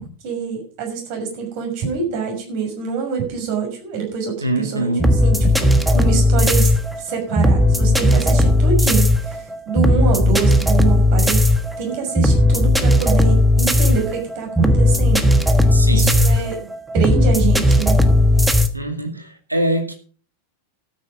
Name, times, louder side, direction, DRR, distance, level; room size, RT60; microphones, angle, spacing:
voice 1, 0.2-4.9 5.2-6.7 7.0-11.5 11.8-15.7 15.9-16.6 16.9-18.0 18.4-18.5, right 6 dB, 45° right, 6.1 m, -26 dB
voice 2, 4.4-5.2 15.7-16.3 18.7-19.9, right 1 dB, 85° right, 2.2 m, -23 dB
sound 1, 5.0-18.7, left 1 dB, 5° right, 1.3 m, -16 dB
13.0 x 9.4 x 5.2 m
figure-of-eight pair, 90°, 0 cm